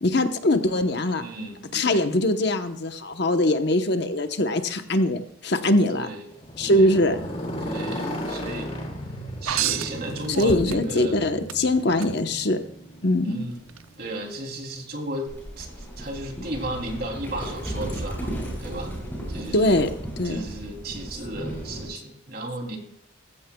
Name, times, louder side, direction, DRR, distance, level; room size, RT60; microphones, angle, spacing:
voice 1, 0.0-1.2 1.7-6.1 6.6-7.2 10.4-12.6 13.0-13.4 19.5-19.9 20.2-20.5, left 1 dB, 55° left, 7 dB, 1.0 m, -22 dB
voice 2, 1.2-2.1 5.9-6.2 6.6-6.9 7.6-8.7 9.4-11.2 13.2-13.7 14.0-15.3 15.6-18.3 18.6-19.0 19.3-19.9 20.2-22.8, right 1 dB, 50° right, 2 dB, 3.1 m, -34 dB
Motorcycle, 6.3-14.4, equal, 30° left, 3.3 m, -35 dB
sound 1, 9.5-11.1 11.5-12.1 13.7-13.8, right 10 dB, 85° right, 0.6 m, -29 dB
Livestock farm animals working animals, 15.3-21.9, right 1 dB, 10° left, 6.2 m, -35 dB
19.5 x 15.5 x 2.3 m, 0.70 s
head